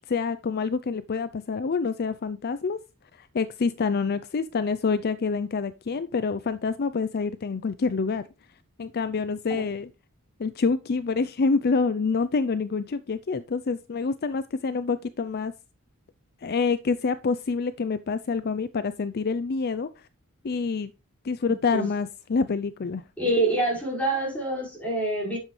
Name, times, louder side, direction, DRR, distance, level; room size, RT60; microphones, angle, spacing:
voice 1, 0.1-2.8 3.1-8.2 8.8-9.9 10.4-15.5 16.4-20.1 20.4-20.9 21.2-23.0, left 4 dB, 45° left, 0.4 m, -27 dB
voice 2, 23.2-25.4, right 2 dB, 5° left, 5.3 m, -26 dB
10.5 x 7.4 x 3.2 m
head